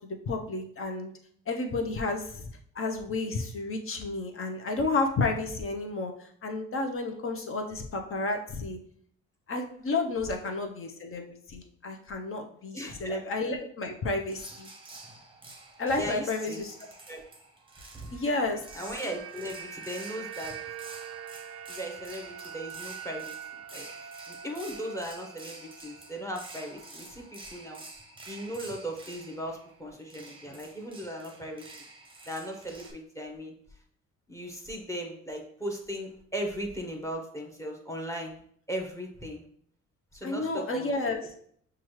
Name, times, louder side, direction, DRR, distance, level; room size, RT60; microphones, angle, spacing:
voice 1, 0.3-1.1 1.5-2.5 2.7-8.8 9.5-14.7 15.8-16.7 18.1-18.6 40.2-41.2, left 3 dB, 45° left, 3 dB, 0.8 m, -31 dB
voice 2, 12.7-13.2 16.0-16.6 17.1-17.2 18.7-20.6 21.7-23.4 23.7-23.9 24.3-27.8 28.3-31.7 32.3-33.5 34.3-38.3 38.7-39.4 40.1-41.2, equal, 10° left, 2 dB, 0.9 m, -37 dB
sound 1, 14.3-32.9, right 2 dB, 15° right, 0.8 m, -48 dB
sound 2, 18.0-26.3 26.6-26.8, right 9 dB, 50° right, 0.5 m, -44 dB
6.0 x 2.4 x 3.1 m, 0.63 s
cardioid pair, 90°, 30 cm